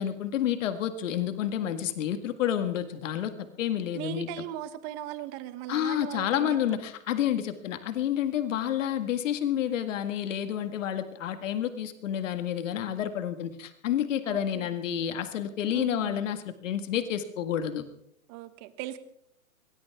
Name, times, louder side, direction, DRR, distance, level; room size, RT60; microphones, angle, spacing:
voice 1, 0.0-3.3 3.6-4.3 5.7-17.8, left 10 dB, 60° left, 9 dB, 1.8 m, -29 dB
voice 2, 3.9-6.8 14.2-14.7 15.7-16.2 18.3-19.0, right 12 dB, 30° right, 13 dB, 1.2 m, -38 dB
22.5 x 17.0 x 3.6 m, 0.74 s
hypercardioid pair, 145°, 42 cm